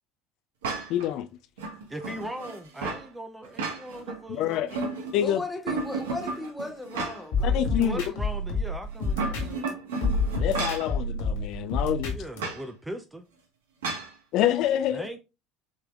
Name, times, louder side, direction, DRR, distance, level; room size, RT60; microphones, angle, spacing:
sound 1, 0.6-1.1 1.6-3.1 3.4-4.2 4.5-5.3 5.7-7.4 7.8-7.9 8.9-10.9 12.4-12.6 13.8-14.1, right 3 dB, 80° right, 1.0 m, -33 dB
voice 1, 0.9-1.3 4.3-4.8 5.1-5.4 7.4-8.0 10.4-12.2 14.3-15.0, left 11 dB, 60° left, 0.3 m, -26 dB
voice 2, 1.9-4.7 7.7-9.8 12.1-13.2 14.9-15.2, right 1 dB, 10° right, 0.5 m, -39 dB
voice 3, 5.2-8.2, left 2 dB, 5° left, 1.5 m, -37 dB
sound 2, 7.3-9.7 10.0-12.4, left 3 dB, 75° left, 2.0 m, -28 dB
6.2 x 3.4 x 2.3 m
hypercardioid pair, 75°, 0 cm